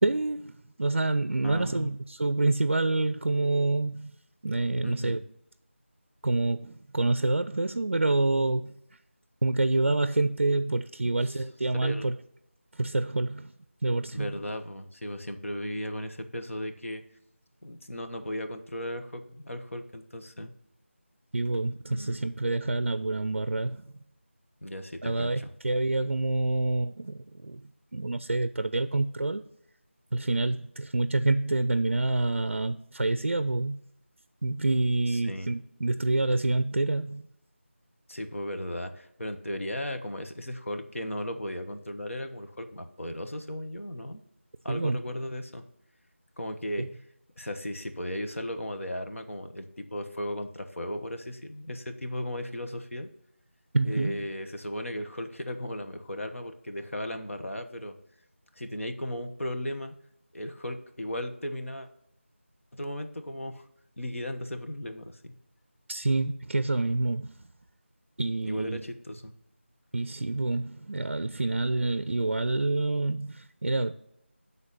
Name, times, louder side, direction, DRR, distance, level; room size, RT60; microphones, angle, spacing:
voice 1, 0.0-4.2 4.4-5.2 6.2-8.7 9.4-12.2 12.7-13.5 13.8-14.3 21.3-23.9 25.0-29.4 30.1-33.8 34.4-37.3 44.7-45.0 46.8-46.9 53.7-54.2 65.9-67.3 68.2-68.8 69.9-73.9, right 2 dB, 60° right, 0.4 m, -27 dB
voice 2, 1.4-1.9 4.8-5.2 11.0-11.4 11.8-12.1 14.1-17.0 17.6-20.5 21.9-22.2 24.6-25.5 35.1-35.5 38.1-44.2 44.6-45.6 46.4-46.9 47.4-53.1 53.8-58.0 58.6-59.9 60.3-61.9 62.7-63.7 64.0-65.3 68.4-69.3, left 1 dB, 80° left, 1.2 m, -36 dB
10.5 x 4.1 x 5.6 m
figure-of-eight pair, 180°, 7 cm